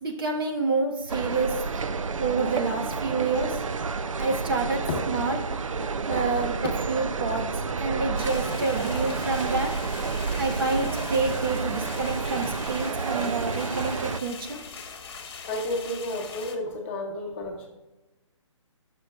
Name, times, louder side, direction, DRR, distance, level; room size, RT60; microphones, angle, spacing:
voice 1, 0.0-1.6 2.2-3.6 4.2-5.4 6.1-7.5 7.8-9.7 10.4-14.6, right 3 dB, 45° right, 2 dB, 1.4 m, -28 dB
sound 1, 1.1-14.2, right 4 dB, 85° right, 0.6 m, -30 dB
voice 2, 5.8-6.4 15.5-17.7, left 1 dB, 25° left, 1 dB, 1.1 m, -33 dB
sound 2, 8.2-16.6, left 5 dB, 45° left, 1.2 m, -41 dB
20.0 x 6.8 x 2.4 m, 1.1 s
hypercardioid pair, 160°, 16 cm